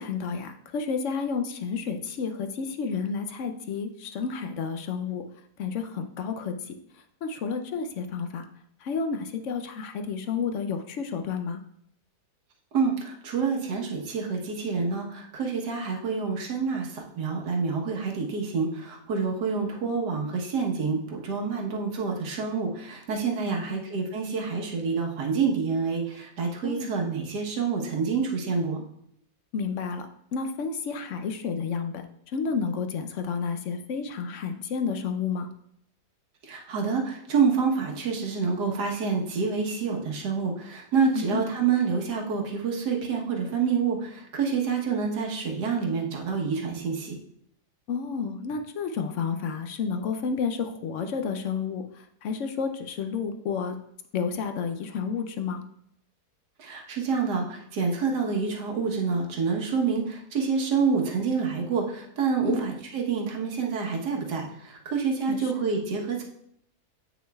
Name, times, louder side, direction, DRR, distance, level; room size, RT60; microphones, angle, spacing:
voice 1, 0.0-5.2 5.6-6.6 7.2-8.5 8.8-11.6 23.5-23.8 26.6-26.9 29.5-30.1 30.3-32.0 32.3-35.5 41.1-41.4 47.9-53.8 54.1-55.6 62.4-62.6 65.3-65.5, left 5 dB, 65° left, 7 dB, 0.8 m, -31 dB
voice 2, 12.7-28.8 36.4-47.2 56.6-66.2, right 5 dB, 85° right, 0 dB, 1.7 m, -27 dB
8.3 x 6.2 x 2.3 m, 0.72 s
omnidirectional pair, 1.7 m